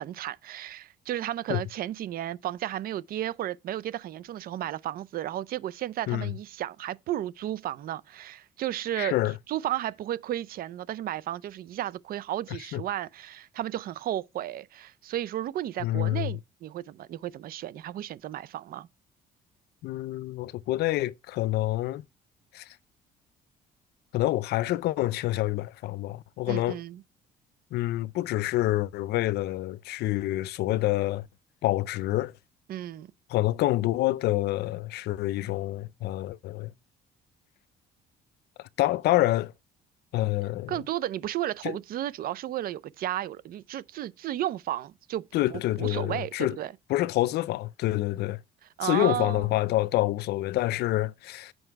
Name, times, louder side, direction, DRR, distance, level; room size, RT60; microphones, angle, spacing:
voice 1, 0.0-9.2 9.5-18.9 26.5-27.0 32.7-33.1 40.7-46.7 48.8-49.5, right 12 dB, 60° right, 0.6 m, -33 dB
voice 2, 9.0-9.3 12.7-12.8 15.8-16.4 19.8-22.0 22.5-22.7 24.1-26.8 27.7-31.3 31.6-32.3 33.3-36.7 38.6-39.5 40.1-40.8 41.6-41.8 45.3-46.6 46.9-48.4 48.8-51.5, left 16 dB, 75° left, 0.5 m, -27 dB
7.8 x 5.8 x 4.6 m
cardioid pair, 110°, 17 cm